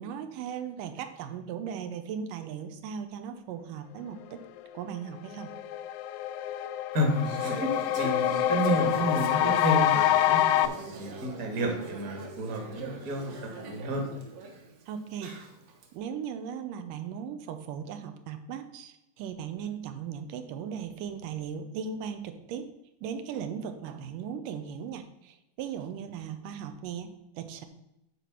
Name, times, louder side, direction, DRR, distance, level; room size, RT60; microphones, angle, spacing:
voice 1, 0.0-4.4 4.7-5.5 14.9-15.4 15.9-22.7 23.0-27.7, right 7 dB, 85° right, 8 dB, 2.4 m, -37 dB
sound 1, 4.9-5.0 5.3-10.7, left 13 dB, 85° left, 1.6 m, -26 dB
voice 2, 6.9-7.7 7.9-13.3 13.6-14.0, right 1 dB, 35° right, 2 dB, 1.5 m, -30 dB
Conversation / Chatter, 6.9-15.9, right 3 dB, 60° right, 2.3 m, -42 dB
10.5 x 4.3 x 5.8 m, 0.86 s
omnidirectional pair, 3.8 m